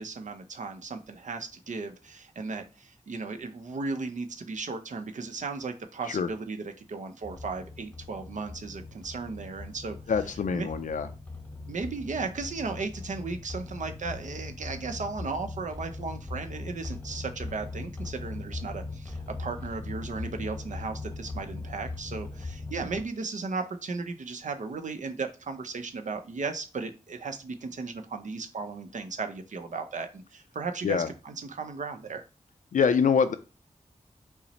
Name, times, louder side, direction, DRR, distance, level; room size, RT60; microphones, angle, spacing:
voice 1, 0.0-10.0 10.5-10.7 11.7-32.2, right 4 dB, 75° right, 7 dB, 0.6 m, -36 dB
sound 1, 7.2-23.0, left 3 dB, 10° left, 0.8 m, -40 dB
voice 2, 10.1-11.1 30.8-31.1 32.7-33.3, left 6 dB, 85° left, 9 dB, 0.4 m, -25 dB
5.7 x 2.0 x 4.1 m, 0.33 s
wide cardioid pair, 60°, 13 cm